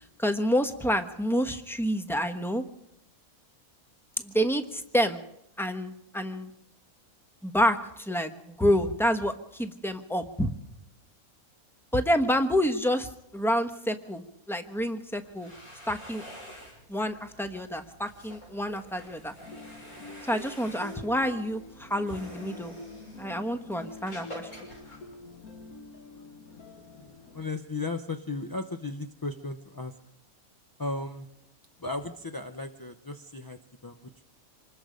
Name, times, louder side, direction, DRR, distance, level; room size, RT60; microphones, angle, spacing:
voice 1, 0.2-2.6 4.2-5.2 5.6-6.5 7.4-10.5 11.9-15.5 15.9-16.2 16.9-19.3 20.2-22.7 23.2-24.5, equal, ahead, 8 dB, 1.0 m, -28 dB
sound 1, 15.1-25.8, equal, 55° left, 6.5 m, -49 dB
sound 2, 19.4-27.4, left 3 dB, 85° left, 2.2 m, -46 dB
voice 2, 27.3-29.9 30.8-31.3 31.8-34.2, left 2 dB, 25° left, 6 dB, 0.5 m, -35 dB
26.5 x 20.5 x 5.2 m, 0.79 s
omnidirectional pair, 1.5 m